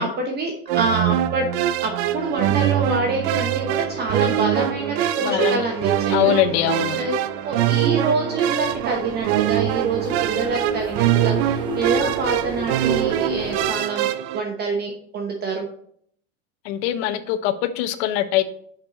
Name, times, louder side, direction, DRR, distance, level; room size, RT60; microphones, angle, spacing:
voice 1, 0.0-1.5 1.8-6.4 7.0-7.1 7.4-14.1 14.3-15.7, right 3 dB, 30° right, 2 dB, 1.0 m, -26 dB
sound 1, 0.7-14.4, right 12 dB, 80° right, 0.6 m, -23 dB
Wind instrument woodwind instrument, 3.8-8.5, left 1 dB, 50° left, 2.6 m, -41 dB
voice 2, 5.2-5.6 6.1-7.0 16.7-18.4, left 12 dB, 85° left, 12 dB, 0.8 m, -22 dB
sound 2, 8.6-13.7, equal, 15° right, 2.2 m, -33 dB
5.4 x 5.3 x 4.1 m, 0.63 s
supercardioid pair, 135°, 32 cm